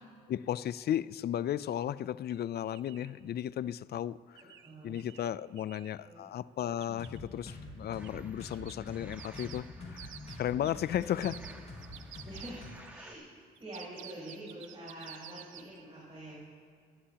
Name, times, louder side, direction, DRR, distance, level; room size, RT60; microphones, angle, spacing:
voice 1, 0.3-4.4 4.8-11.4, left 11 dB, 55° left, 0.4 m, -35 dB
sound 1, 2.3-2.4 2.7-3.2 4.4-6.0 6.6-7.2 8.0-8.2 8.5-12.9 13.6-15.8, right 11 dB, 85° right, 0.7 m, -52 dB
voice 2, 4.6-5.0 6.0-6.3 11.0-11.2 12.2-13.3 13.6-16.4, right 1 dB, 30° right, 4.8 m, -46 dB
sound 2, 6.9-12.7, left 2 dB, 35° left, 4.0 m, -46 dB
sound 3, 7.9-13.2, right 1 dB, 10° right, 1.9 m, -56 dB
28.5 x 13.5 x 2.9 m
cardioid pair, 90°, 20 cm